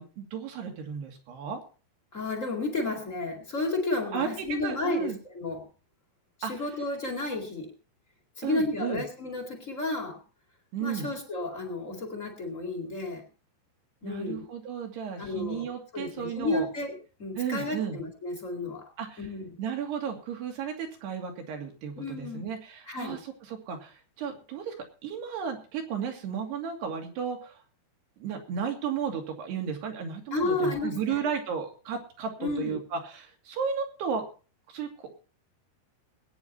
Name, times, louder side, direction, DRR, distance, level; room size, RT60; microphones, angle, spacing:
voice 1, 0.0-1.6 4.1-5.2 6.4-6.5 8.4-9.0 10.7-11.1 14.0-16.7 17.4-18.0 19.0-19.3 19.6-24.8 25.0-27.6 28.2-34.2 34.7-35.2, right 7 dB, 75° right, 3 dB, 4.6 m, -34 dB
voice 2, 2.1-5.7 6.4-7.7 8.4-10.2 10.8-13.2 14.0-14.4 15.2-18.9 19.2-19.6 22.0-22.5 22.9-23.2 30.3-31.3 32.4-32.8, left 2 dB, 25° left, 3 dB, 1.7 m, -32 dB
21.0 x 9.5 x 4.1 m, 0.37 s
omnidirectional pair, 4.7 m